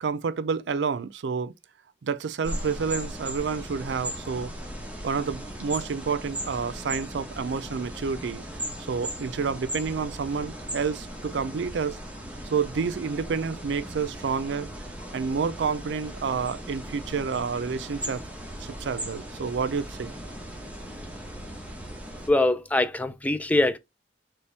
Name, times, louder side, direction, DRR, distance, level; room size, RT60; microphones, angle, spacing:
voice 1, 0.0-1.5 2.0-4.5 5.0-8.4 8.9-12.0 12.5-14.9 15.1-18.2 18.6-20.1, right 5 dB, 90° right, 0.4 m, -29 dB
sound 1, 2.4-22.3, right 1 dB, 10° right, 1.0 m, -38 dB
voice 2, 22.3-23.8, left 2 dB, 10° left, 0.4 m, -23 dB
4.4 x 3.0 x 3.3 m
head